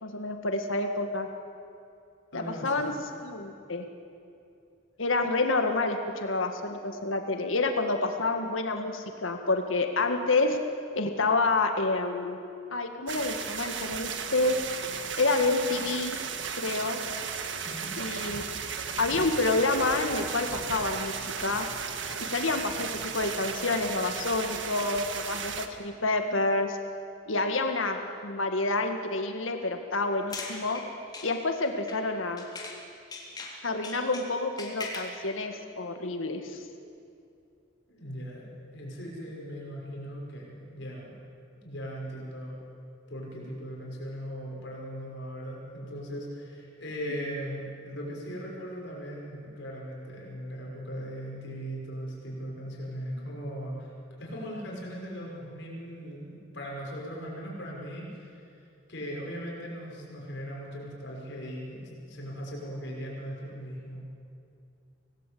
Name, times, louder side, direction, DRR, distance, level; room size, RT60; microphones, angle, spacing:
voice 1, 0.0-1.3 2.3-2.9 3.2-3.9 5.0-10.6 10.9-12.4 12.7-14.6 15.2-16.2 16.6-17.0 18.0-18.5 19.0-21.7 22.2-26.8 27.3-30.8 31.2-32.4 33.6-36.6 53.2-53.3, left 3 dB, 85° left, 5 dB, 1.9 m, -28 dB
voice 2, 2.3-2.9 17.6-17.9 37.9-38.5 38.7-41.1 41.5-42.6 43.1-53.9 54.2-58.4 58.9-64.0, equal, 60° left, -3 dB, 6.1 m, -39 dB
sound 1, 13.1-25.7, right 6 dB, 70° right, 1.6 m, -35 dB
sound 2, 30.1-32.8 33.1-35.2, left 3 dB, 20° left, 2.8 m, -41 dB
25.5 x 18.0 x 8.6 m, 2.5 s
head